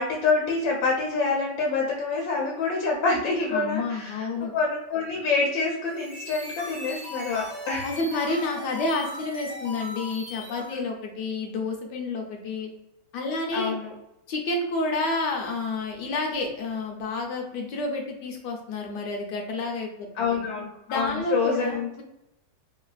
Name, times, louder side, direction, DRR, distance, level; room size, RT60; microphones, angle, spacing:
voice 1, 0.0-4.3 4.5-7.9 8.1-8.4 10.7-10.8 13.5-13.9 20.2-21.9, left 4 dB, 90° left, -2 dB, 1.4 m, -26 dB
voice 2, 3.5-4.5 7.8-12.7 13.1-13.8 14.3-20.4 20.9-22.0, left 3 dB, 70° left, 2 dB, 1.2 m, -30 dB
sound 1, 5.8-10.9, left 2 dB, 45° left, 0.5 m, -38 dB
3.2 x 2.3 x 2.3 m, 0.87 s
omnidirectional pair, 2.0 m